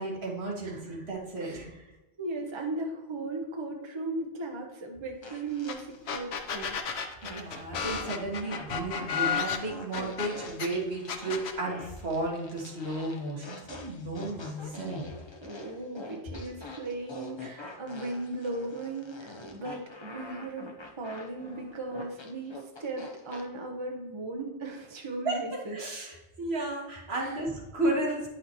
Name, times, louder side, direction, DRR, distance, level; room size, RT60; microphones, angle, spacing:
voice 1, 0.0-1.7 7.2-15.1 25.3-25.4 25.7-28.3, right 2 dB, 75° right, -1 dB, 1.7 m, -33 dB
voice 2, 0.6-1.0 1.4-1.7 2.2-6.8 15.4-20.7 21.0-25.8 27.2-27.4, right 2 dB, 30° right, 2 dB, 0.9 m, -37 dB
sound 1, 5.2-6.8 7.2-23.4, left 2 dB, 30° left, 0.8 m, -45 dB
sound 2, 5.7-5.8 6.1-10.7 11.1-11.6, left 7 dB, 80° left, 1.0 m, -32 dB
9.5 x 6.0 x 3.0 m, 1.0 s
omnidirectional pair, 1.1 m